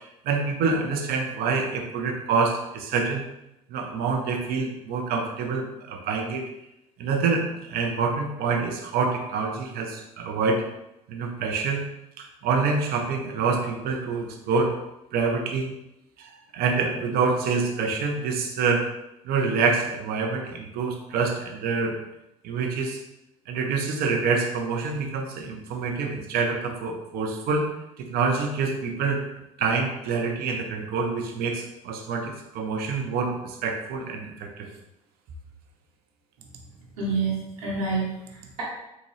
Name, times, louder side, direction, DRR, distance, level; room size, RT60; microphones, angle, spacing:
voice 1, 0.0-3.2 3.7-6.4 7.0-10.6 11.1-11.8 12.2-14.7 15.1-15.7 16.2-18.9 19.2-22.0 22.4-23.0 23.5-27.7 28.0-29.2 29.6-34.7, right 4 dB, 55° right, 2 dB, 0.8 m, -26 dB
voice 2, 37.0-38.6, right 4 dB, 75° right, -6 dB, 1.3 m, -28 dB
3.7 x 2.5 x 3.3 m, 0.88 s
hypercardioid pair, 70°, 18 cm